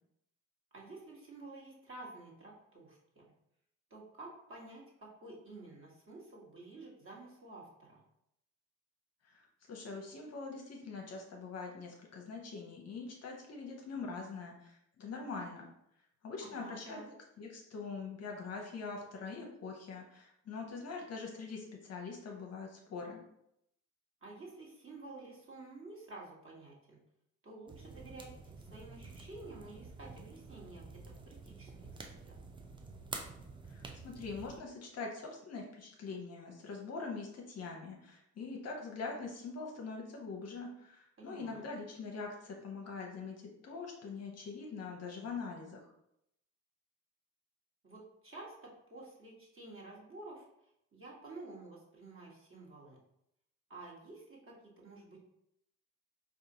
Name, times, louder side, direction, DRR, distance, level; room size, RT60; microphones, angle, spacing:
voice 1, 0.7-3.2 3.9-8.0 16.4-17.1 24.2-27.0 27.4-28.3 28.6-31.7 32.0-32.4 41.2-41.7 47.8-50.4 50.9-53.0 53.7-55.2, right 2 dB, 30° right, -3 dB, 1.4 m, -51 dB
voice 2, 9.2-15.7 16.2-17.0 17.4-23.2 33.7-45.9, left 4 dB, 40° left, 1 dB, 0.7 m, -43 dB
sound 1, 27.7-34.6, right 3 dB, 15° right, 0.4 m, -49 dB
4.7 x 2.5 x 2.7 m, 0.78 s
figure-of-eight pair, 50°, 41 cm